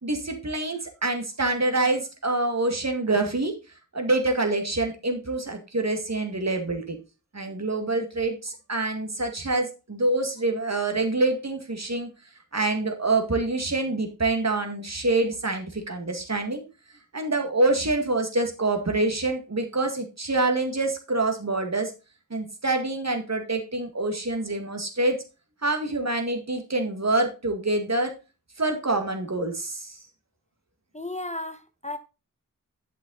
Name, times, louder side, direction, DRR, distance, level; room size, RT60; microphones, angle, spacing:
voice 1, 0.0-3.5 3.9-7.0 7.3-12.1 12.5-16.6 17.1-21.9 22.3-25.2 25.6-28.1 28.6-30.0, right 2 dB, 50° right, 2.1 m, -26 dB
voice 2, 30.9-32.0, left 2 dB, 20° left, 0.8 m, -34 dB
11.0 x 6.0 x 4.0 m
wide cardioid pair, 70°, 35 cm